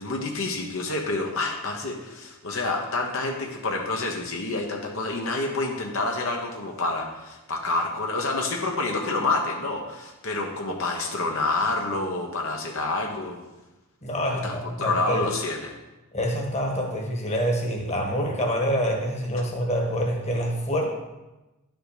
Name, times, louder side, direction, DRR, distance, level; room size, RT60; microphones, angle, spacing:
voice 1, 0.0-13.4 14.4-15.7, left 2 dB, 65° left, 1 dB, 1.2 m, -28 dB
voice 2, 14.0-15.3 16.1-20.9, equal, 30° left, 1 dB, 1.4 m, -26 dB
11.0 x 5.8 x 5.1 m, 1.1 s
head